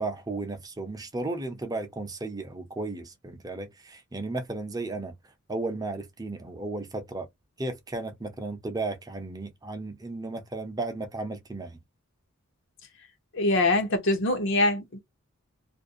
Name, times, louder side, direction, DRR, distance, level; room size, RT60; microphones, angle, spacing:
voice 1, 0.0-5.1 5.5-7.3 7.6-11.8, right 2 dB, 20° right, 0.6 m, -34 dB
voice 2, 13.3-15.0, left 2 dB, 60° left, 0.8 m, -24 dB
2.5 x 2.2 x 2.6 m
head